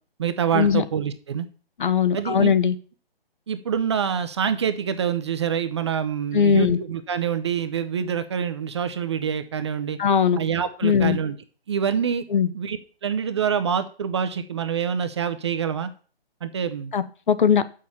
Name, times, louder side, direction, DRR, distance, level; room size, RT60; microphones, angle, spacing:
voice 1, 0.2-1.5 2.1-2.5 3.5-10.0 10.4-11.4 11.7-12.2 12.5-12.8 13.0-15.9 16.4-16.9, right 7 dB, 30° right, 0.6 m, -26 dB
voice 2, 1.8-2.7 6.3-6.8 10.0-10.4 10.8-11.2 12.3-12.5 16.9-17.6, left 7 dB, 55° left, 0.9 m, -19 dB
7.3 x 6.5 x 7.1 m
hypercardioid pair, 150°, 30 cm